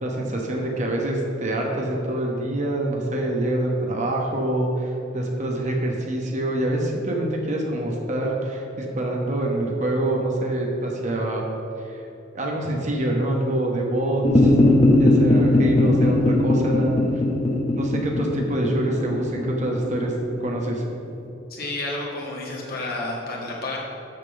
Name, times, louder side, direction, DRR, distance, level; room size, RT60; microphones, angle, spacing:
voice 1, 0.0-11.4 11.8-12.0 12.3-14.5 15.0-16.9 17.7-20.1 20.4-20.8, right 1 dB, 35° right, -1 dB, 1.1 m, -25 dB
sound 1, 14.2-20.8, left 1 dB, 30° left, 0.9 m, -19 dB
voice 2, 21.5-23.8, left 2 dB, 50° left, -3 dB, 1.8 m, -30 dB
6.7 x 5.9 x 6.9 m, 2.9 s
head